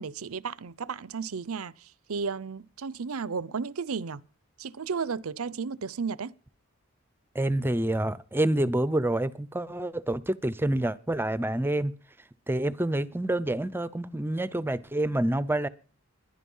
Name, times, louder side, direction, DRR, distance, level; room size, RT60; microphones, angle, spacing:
voice 1, 0.0-1.7 2.1-4.2 4.6-6.3, right 5 dB, 85° right, 0.6 m, -33 dB
voice 2, 7.3-11.9 12.5-15.7, right 1 dB, 10° right, 0.6 m, -27 dB
21.0 x 11.0 x 5.5 m
head